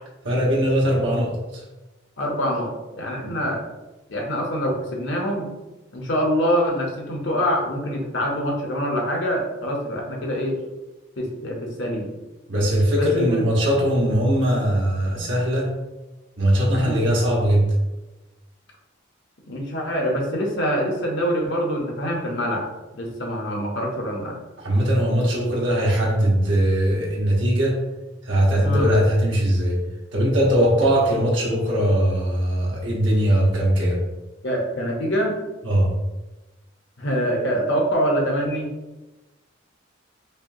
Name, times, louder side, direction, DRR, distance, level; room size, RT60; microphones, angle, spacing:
voice 1, 0.2-1.6 3.2-3.3 12.5-15.7 16.4-17.7 24.6-27.8 28.2-29.8 30.1-34.0 35.6-35.9, equal, 75° right, -4 dB, 1.2 m, -20 dB
voice 2, 2.2-3.6 4.1-5.5 5.9-10.6 11.2-12.1 13.0-13.4 16.7-17.1 19.5-22.7 22.9-24.4 28.6-28.9 34.4-35.4 37.0-38.7, equal, 65° left, 0 dB, 0.9 m, -25 dB
5.3 x 2.2 x 2.7 m, 1.1 s
head